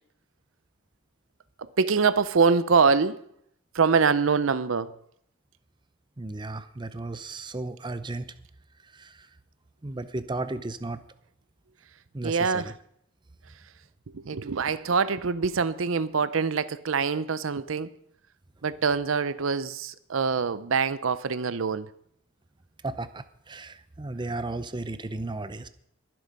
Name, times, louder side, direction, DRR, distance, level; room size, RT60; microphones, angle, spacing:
voice 1, 1.6-3.2 3.7-4.9 12.2-12.8 14.1-17.9 18.6-21.9, right 5 dB, 75° right, 0.6 m, -24 dB
voice 2, 6.2-8.3 8.9-9.2 9.8-11.0 12.1-12.7 22.8-25.7, right 2 dB, 25° right, 0.7 m, -34 dB
21.5 x 7.8 x 5.3 m
head